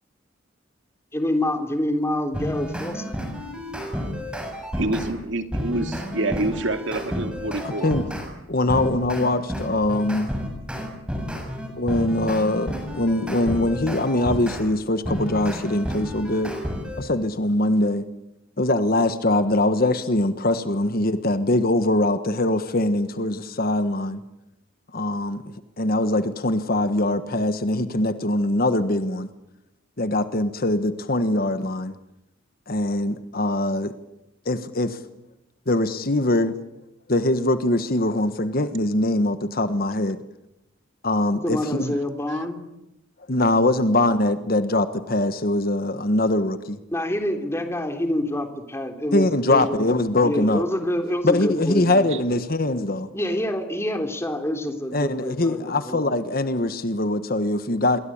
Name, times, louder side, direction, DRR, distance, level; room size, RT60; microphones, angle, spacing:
voice 1, 1.1-3.2 41.3-42.6 46.9-49.9 50.2-52.5 53.1-56.1, left 1 dB, 15° left, 3.4 m, -27 dB
sound 1, 2.3-5.1 5.5-8.3 8.7-14.6 15.0-17.0, equal, 5° right, 6.8 m, -31 dB
voice 2, 4.8-7.9 42.3-42.4, right 2 dB, 65° right, 2.6 m, -27 dB
voice 3, 7.6-8.1 8.5-10.2 11.8-16.5 17.0-18.0 18.6-24.2 24.9-29.3 30.0-31.9 32.7-33.9 34.4-35.0 35.7-36.5 37.1-40.2 41.0-41.9 43.3-46.8 49.1-50.6 51.2-53.1 54.9-58.0, left 1 dB, 45° left, 1.4 m, -22 dB
27.5 x 23.0 x 8.8 m
head